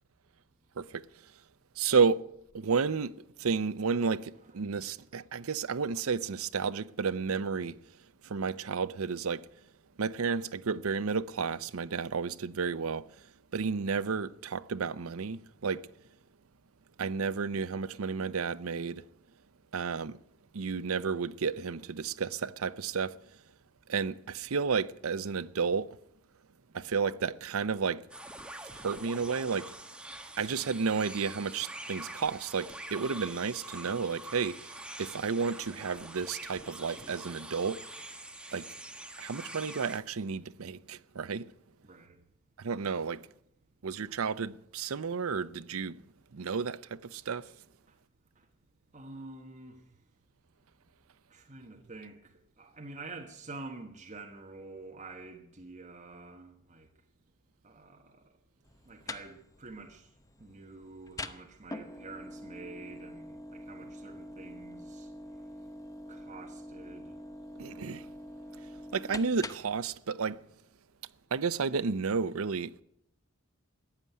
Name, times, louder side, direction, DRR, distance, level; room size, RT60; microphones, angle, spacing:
voice 1, 0.8-1.4 1.8-2.3 2.5-9.6 10.0-15.9 17.0-19.1 19.7-20.2 20.5-23.4 23.9-26.0 26.7-28.1 28.7-29.7 30.4-38.1 38.5-38.7 39.2-41.5 42.6-43.3 43.8-46.0 46.3-47.6 67.6-68.1 68.6-70.5 71.3-72.8, right 5 dB, 80° right, 0.6 m, -32 dB
sound 1, 28.1-40.0, right 1 dB, 5° right, 1.1 m, -45 dB
voice 2, 41.8-42.2 47.9-48.0 48.3-48.4 48.9-49.8 51.3-56.9 57.6-58.2 58.8-60.1 60.4-65.1 66.1-67.2 67.5-67.9, right 3 dB, 35° right, 1.4 m, -48 dB
sound 2, 58.6-69.8, left 1 dB, 15° left, 0.8 m, -45 dB
15.0 x 9.9 x 9.4 m
head